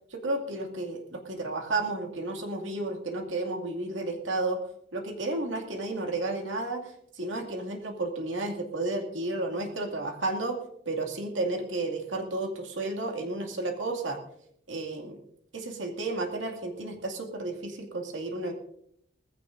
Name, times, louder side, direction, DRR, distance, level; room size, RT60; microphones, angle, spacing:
voice 1, 0.1-4.6 4.9-10.6 10.9-14.2 14.7-15.2 15.5-18.5, right 2 dB, 90° right, 2 dB, 2.3 m, -32 dB
19.5 x 15.0 x 2.6 m, 0.71 s
head